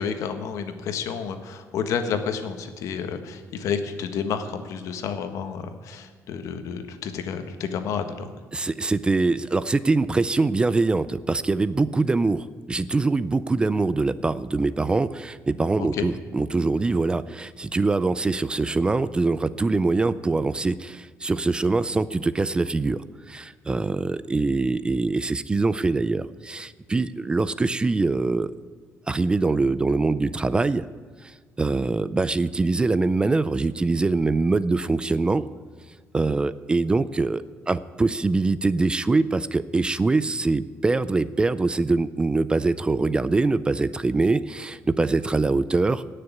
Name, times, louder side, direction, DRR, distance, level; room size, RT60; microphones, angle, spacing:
voice 1, 0.0-8.3 15.8-16.1, left 6 dB, 70° left, 8 dB, 1.4 m, -30 dB
voice 2, 8.5-28.5 29.1-30.9 31.2-31.3 31.6-35.5 36.1-46.0, right 3 dB, 15° right, 16 dB, 0.4 m, -23 dB
17.5 x 6.6 x 9.5 m, 1.5 s
cardioid pair, 135°, 6 cm